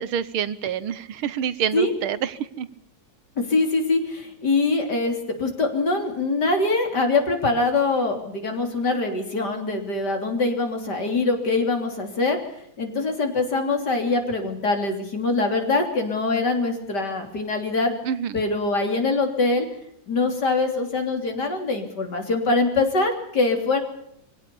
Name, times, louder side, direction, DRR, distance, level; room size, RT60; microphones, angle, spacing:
voice 1, 0.0-2.7 18.0-18.4, right 8 dB, 75° right, 15 dB, 1.8 m, -27 dB
voice 2, 3.4-12.4 12.8-17.9 18.3-19.7 20.1-23.8, left 3 dB, 50° left, 4 dB, 3.8 m, -23 dB
23.5 x 17.0 x 7.0 m, 0.73 s
omnidirectional pair, 2.3 m